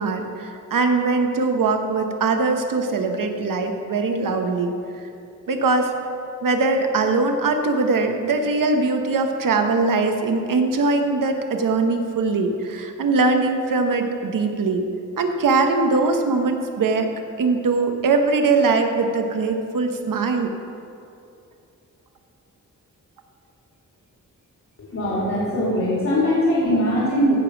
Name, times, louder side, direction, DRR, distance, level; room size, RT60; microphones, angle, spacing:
voice 1, 0.0-4.7 5.5-5.9 6.4-14.9 15.2-17.1 17.4-20.5, right 3 dB, 80° right, 5 dB, 1.1 m, -21 dB
voice 2, 24.8-27.4, equal, 55° left, -6 dB, 2.3 m, -21 dB
15.5 x 5.2 x 5.9 m, 2.6 s
wide cardioid pair, 170°, 32 cm